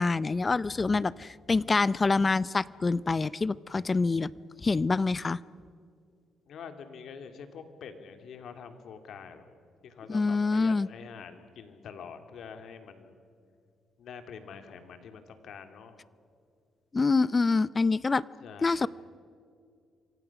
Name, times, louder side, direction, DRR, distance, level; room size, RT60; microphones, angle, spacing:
voice 1, 0.0-4.3 4.6-5.4 10.1-10.9 16.9-18.2 18.6-18.9, left 3 dB, 30° left, 20 dB, 0.5 m, -26 dB
voice 2, 6.5-9.5 9.8-13.2 14.0-16.0 18.4-18.9, left 6 dB, 70° left, 7 dB, 2.6 m, -46 dB
28.0 x 24.5 x 6.0 m, 2.3 s
cardioid pair, 90°, 0 cm